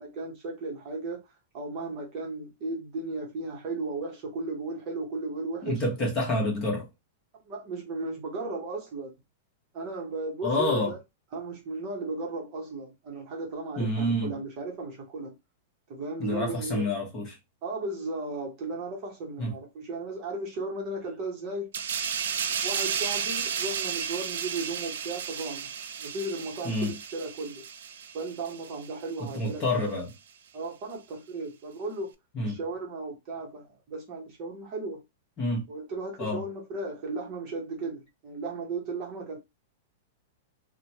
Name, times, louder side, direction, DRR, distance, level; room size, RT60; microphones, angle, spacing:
voice 1, 0.0-1.2 1.5-5.8 7.4-9.1 9.7-11.0 11.3-15.4 15.9-16.9 17.6-21.7 22.6-25.7 26.0-27.6 28.1-29.8 30.5-32.1 32.4-35.0 35.7-39.4, right 2 dB, 30° right, 0.8 m, -35 dB
voice 2, 5.6-6.9 10.4-10.9 13.8-14.3 16.2-17.4 19.4-19.5 26.6-27.0 29.2-30.1 32.3-32.6 35.4-35.7 36.2-36.4, left 1 dB, 25° left, 1.0 m, -28 dB
sound 1, 21.7-28.9 29.3-29.5, right 7 dB, 85° right, 0.4 m, -33 dB
3.0 x 2.1 x 2.8 m
supercardioid pair, 175°, 0 cm